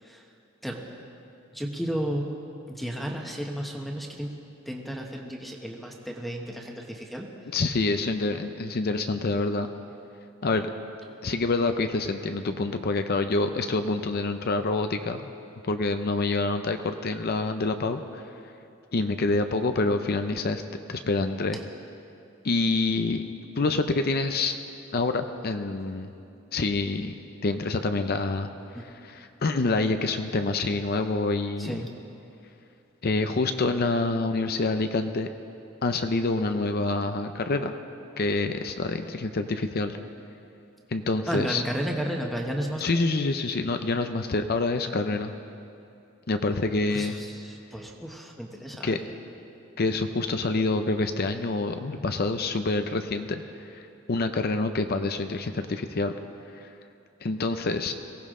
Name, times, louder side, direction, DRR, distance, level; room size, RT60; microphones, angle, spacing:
voice 1, 1.5-2.3 2.7-4.3 4.6-7.3 28.7-28.8 31.6-31.9 41.3-42.8 46.9-49.0, equal, ahead, 0 dB, 1.1 m, -33 dB
voice 2, 7.5-9.7 10.4-10.7 11.2-15.3 15.6-18.5 18.9-20.6 20.9-21.6 22.4-23.3 23.5-24.6 24.9-26.1 26.5-27.1 27.4-28.5 29.1-31.8 33.0-35.3 35.8-37.8 38.2-40.0 40.9-41.6 42.8-45.3 46.3-47.1 48.8-49.0 49.8-53.8 54.1-56.1 56.6-56.7 57.2-57.9, left 3 dB, 50° left, 7 dB, 0.6 m, -27 dB
23.0 x 16.5 x 3.7 m, 2.6 s
head